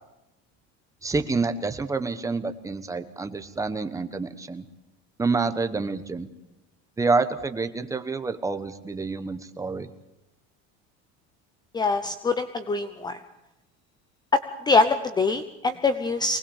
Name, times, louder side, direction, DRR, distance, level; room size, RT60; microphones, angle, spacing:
voice 1, 1.0-4.6 5.2-6.3 7.0-9.9, right 3 dB, 10° right, 9 dB, 1.1 m, -28 dB
voice 2, 11.7-13.2 14.3-14.4 14.7-16.4, left 3 dB, 15° left, 11 dB, 0.7 m, -23 dB
24.0 x 19.5 x 7.2 m, 0.92 s
cardioid pair, 160°, 29 cm